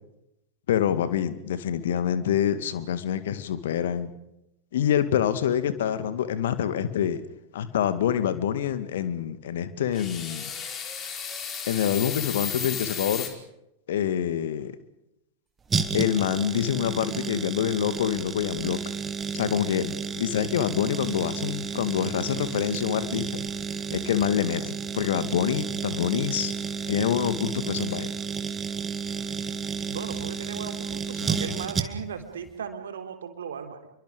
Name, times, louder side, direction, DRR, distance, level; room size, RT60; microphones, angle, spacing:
voice 1, 0.7-4.1 4.7-7.2 7.5-10.5 11.7-13.3 13.9-14.7 15.9-18.8 19.3-23.4 23.9-26.5 26.9-28.1, left 9 dB, 60° left, 12 dB, 2.1 m, -26 dB
sound 1, 9.9-13.3, left 7 dB, 30° left, 4.8 m, -34 dB
sound 2, 15.7-32.2 32.5-32.6, right 5 dB, 20° right, 2.1 m, -32 dB
voice 2, 29.9-33.9, right 7 dB, 65° right, 6 dB, 3.5 m, -37 dB
30.0 x 23.5 x 5.2 m, 0.83 s
figure-of-eight pair, 90°, 0 cm